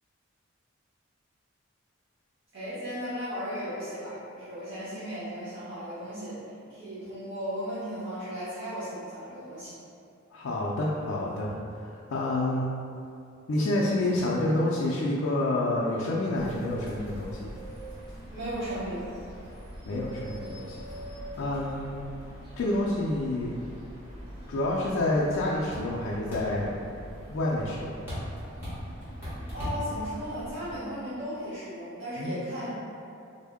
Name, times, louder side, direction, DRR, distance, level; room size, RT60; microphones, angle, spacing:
voice 1, 2.5-6.4 6.6-9.7 18.3-19.1 29.5-32.7, equal, 60° right, -13 dB, 1.0 m, -36 dB
voice 2, 10.3-12.7 13.5-17.5 19.9-20.8 21.4-22.0 22.6-23.5 24.5-26.8 27.3-28.0 32.2-32.4, left 1 dB, 75° left, -5 dB, 0.4 m, -28 dB
sound 1, 16.3-30.7, equal, 10° right, 1.2 m, -41 dB
3.4 x 2.1 x 3.5 m, 2.5 s
head